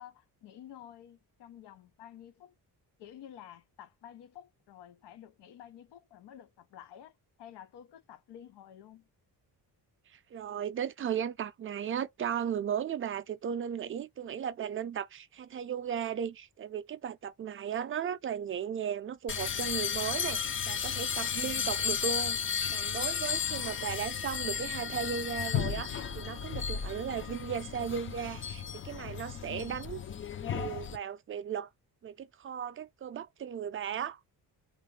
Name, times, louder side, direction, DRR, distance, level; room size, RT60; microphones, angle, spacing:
voice 1, 0.0-2.5 3.0-7.1 7.4-9.1 21.5-21.7 23.5-24.1 29.5-29.9, left 11 dB, 90° left, 0.8 m, -51 dB
voice 2, 10.1-22.4 22.7-30.0 30.5-31.7 32.0-34.2, right 8 dB, 35° right, 0.4 m, -36 dB
sound 1, 19.3-31.0, left 7 dB, 35° left, 0.4 m, -34 dB
3.5 x 2.5 x 3.2 m
cardioid pair, 130°, 40 cm